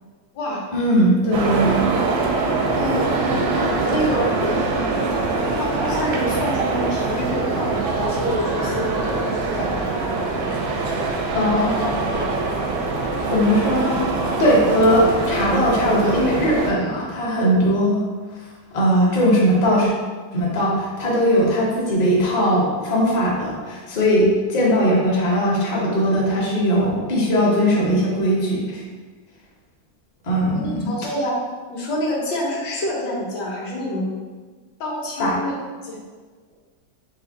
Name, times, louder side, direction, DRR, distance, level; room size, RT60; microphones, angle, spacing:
voice 1, 0.7-1.9 11.3-11.8 13.3-14.1 14.4-18.0 18.7-19.9 20.3-28.8 30.2-30.9 35.2-35.4, equal, 55° left, -4 dB, 0.4 m, -19 dB
sound 1, 1.3-16.7, right 3 dB, 85° right, 1.4 m, -23 dB
voice 2, 2.8-3.1 3.4-4.6 5.6-10.0 11.5-12.3 30.6-31.4 31.7-34.1 34.8-35.6 35.8-36.0, equal, 70° left, -3 dB, 1.6 m, -27 dB
4.8 x 2.5 x 3.8 m, 1.4 s
omnidirectional pair, 2.1 m